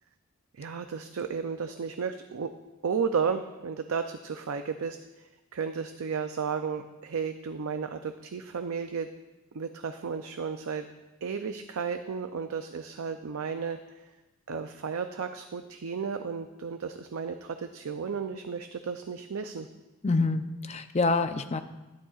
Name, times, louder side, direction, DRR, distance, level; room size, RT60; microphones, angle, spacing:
voice 1, 0.5-2.5 2.8-5.0 5.5-9.1 9.5-10.9 11.2-14.0 14.5-19.7, right 6 dB, 80° right, 8 dB, 0.5 m, -33 dB
voice 2, 20.0-21.6, left 3 dB, 30° left, 9 dB, 0.5 m, -26 dB
13.0 x 11.5 x 2.4 m, 1.1 s
head